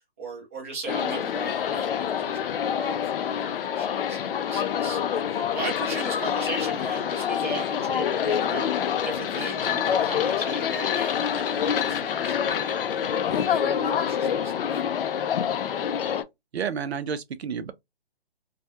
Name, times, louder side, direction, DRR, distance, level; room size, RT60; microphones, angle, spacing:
voice 1, 0.2-5.0 5.3-12.8 13.2-14.8, right 3 dB, 15° right, 0.4 m, -38 dB
sound 1, 0.9-16.2, left 8 dB, 60° left, 0.4 m, -26 dB
voice 2, 16.5-17.7, right 7 dB, 75° right, 0.6 m, -30 dB
2.3 x 2.2 x 2.6 m
hypercardioid pair, 150°, 32 cm